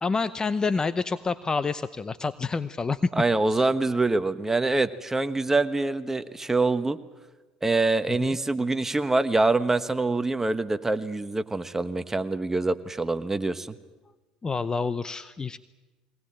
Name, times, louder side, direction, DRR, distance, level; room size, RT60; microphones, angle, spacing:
voice 1, 0.0-3.1 3.5-3.6 8.1-8.4 14.4-15.6, left 4 dB, 25° left, 15 dB, 0.7 m, -28 dB
voice 2, 3.2-7.0 7.6-13.8, right 3 dB, 15° right, 11 dB, 1.3 m, -25 dB
22.0 x 19.0 x 8.9 m, 1.2 s
hypercardioid pair, 75°, 3 cm